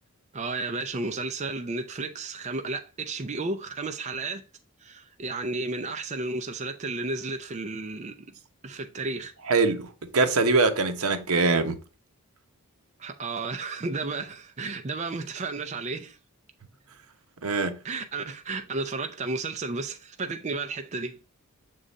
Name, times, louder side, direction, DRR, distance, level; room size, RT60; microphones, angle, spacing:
voice 1, 0.3-4.4 4.8-8.4 8.6-9.3 13.0-16.2 17.8-21.2, right 3 dB, 30° right, 0.5 m, -33 dB
voice 2, 9.5-11.7 17.4-17.8, right 3 dB, 75° right, 0.9 m, -23 dB
6.5 x 3.8 x 3.9 m
head